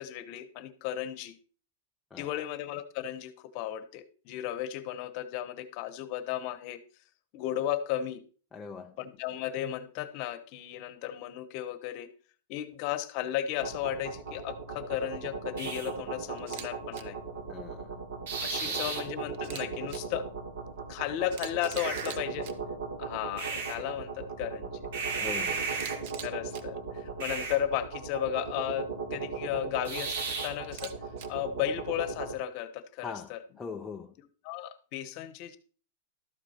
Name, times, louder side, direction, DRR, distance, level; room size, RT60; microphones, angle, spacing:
voice 1, 0.0-1.4 2.1-6.8 7.3-8.2 9.0-12.1 12.5-17.2 18.4-20.3 20.9-22.5 23.0-24.9 26.2-30.9 31.3-33.4 34.2-35.6, left 11 dB, 35° left, 1.0 m, -35 dB
voice 2, 2.1-2.5 8.5-9.0 17.5-18.0 18.7-18.9 25.2-25.7 33.0-34.1, left 5 dB, 10° left, 0.4 m, -42 dB
sound 1, 13.6-32.3, right 5 dB, 65° right, 3.1 m, -36 dB
Camera, 16.4-16.7 16.9-17.0 19.3-20.0 20.9-21.0 21.3-22.5 25.7-26.6 30.6-31.3, right 8 dB, 40° right, 1.1 m, -43 dB
13.0 x 8.2 x 4.4 m
supercardioid pair, 175°, 0 cm